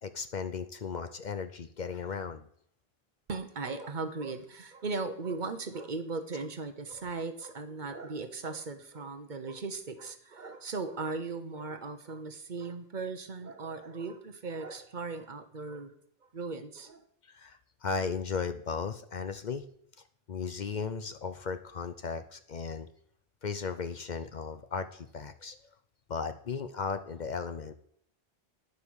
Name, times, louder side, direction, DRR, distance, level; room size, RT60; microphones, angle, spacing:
voice 1, 0.0-2.5 17.3-19.6 20.3-22.9 23.4-25.6 26.1-27.7, left 5 dB, 55° left, 10 dB, 0.7 m, -36 dB
voice 2, 3.3-15.9 16.2-17.1, right 3 dB, 50° right, 8 dB, 1.0 m, -38 dB
10.0 x 5.4 x 6.2 m, 0.65 s
omnidirectional pair, 1.0 m